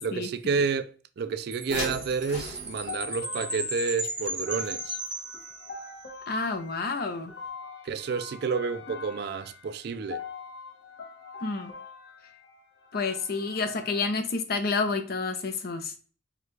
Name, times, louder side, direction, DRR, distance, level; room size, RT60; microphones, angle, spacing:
voice 1, 0.0-5.0 7.8-10.3, right 5 dB, 65° right, 0.4 m, -30 dB
Chime, 1.5-6.0, right 1 dB, 5° right, 0.9 m, -35 dB
sound 1, 1.7-5.1 7.0-7.1 7.4-7.5, left 1 dB, 45° left, 1.2 m, -39 dB
sound 2, 2.9-14.2, left 5 dB, 75° left, 1.3 m, -44 dB
voice 2, 6.3-7.3 11.4-11.7 12.9-15.9, left 4 dB, 60° left, 0.7 m, -29 dB
4.8 x 2.4 x 3.0 m
head